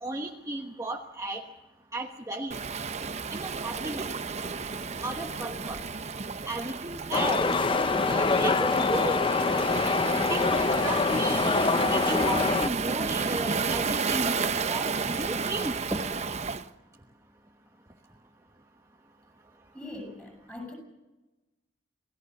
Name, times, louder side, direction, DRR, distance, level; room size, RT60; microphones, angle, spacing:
voice 1, 0.0-1.4 1.9-2.6 3.3-4.1 5.0-5.8 6.5-7.6 8.1-9.3 10.3-11.6 11.9-14.4 14.7-16.0, right 1 dB, 15° right, 2 dB, 1.2 m, -34 dB
Waves surf, 2.5-16.7, right 5 dB, 35° right, 0.8 m, -32 dB
sound 1, 7.1-12.7, left 3 dB, 25° left, 0.7 m, -25 dB
voice 2, 19.7-20.7, left 2 dB, 10° left, 3 dB, 8.0 m, -41 dB
28.0 x 17.5 x 6.7 m, 1.1 s
head